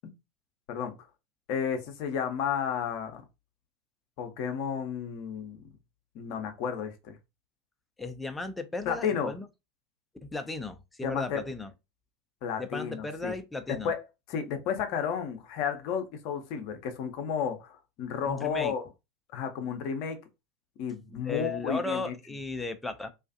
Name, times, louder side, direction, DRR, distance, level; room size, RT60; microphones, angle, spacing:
voice 1, 1.5-3.2 4.2-5.6 6.1-7.2 8.9-9.3 11.0-11.4 12.4-13.3 13.8-14.0 14.3-18.9 19.3-20.2 20.8-22.1, left 7 dB, 55° left, 0.6 m, -32 dB
voice 2, 8.0-9.5 10.3-11.7 12.6-13.9 18.3-18.7 21.1-23.1, left 3 dB, 10° left, 0.5 m, -35 dB
2.4 x 2.4 x 2.5 m
figure-of-eight pair, 80°, 0 cm